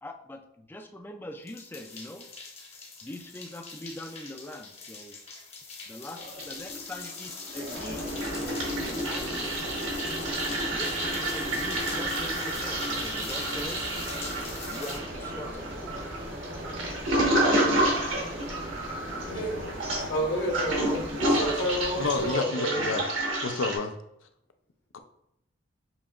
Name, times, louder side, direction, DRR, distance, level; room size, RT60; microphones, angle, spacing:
voice 1, 0.0-2.3 3.0-5.2 5.9-9.5 10.5-14.0 14.7-15.6, left 1 dB, 10° left, 4 dB, 0.3 m, -42 dB
sound 1, 1.5-15.0, left 4 dB, 30° left, 0.8 m, -42 dB
Toilet flush, 6.2-7.0 7.3-23.8, right 1 dB, 80° right, 1.4 m, -30 dB
sound 2, 7.7-22.3, equal, 60° right, 1.0 m, -40 dB
voice 2, 19.3-19.7 20.0-20.1 22.0-23.0 23.4-23.9, left 3 dB, 80° left, 7 dB, 0.5 m, -30 dB
voice 3, 20.1-22.8, equal, 60° left, -1 dB, 1.3 m, -30 dB
7.0 x 2.9 x 2.4 m, 0.78 s
head